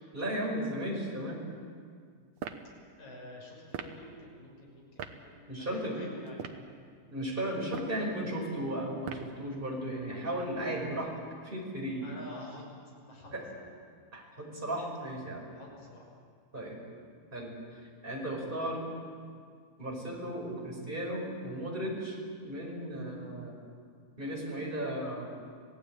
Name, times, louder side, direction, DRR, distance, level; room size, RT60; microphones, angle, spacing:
voice 1, 0.1-1.4 5.5-6.0 7.1-11.1 11.4-12.1 13.3-13.4 14.1-15.5 16.5-16.8 17.3-18.8 19.8-23.5 24.2-25.3, right 1 dB, 10° right, -1 dB, 4.9 m, -35 dB
sound 1, 2.4-2.7 3.7-4.0 5.0-5.2 6.3-6.7 7.6-8.0 9.0-9.4, right 8 dB, 75° right, 1.7 m, -40 dB
voice 2, 3.0-6.7 12.0-12.6 13.0-13.7 15.5-16.1, left 1 dB, 40° left, -2 dB, 7.2 m, -49 dB
27.5 x 17.5 x 8.8 m, 2.1 s
omnidirectional pair, 5.1 m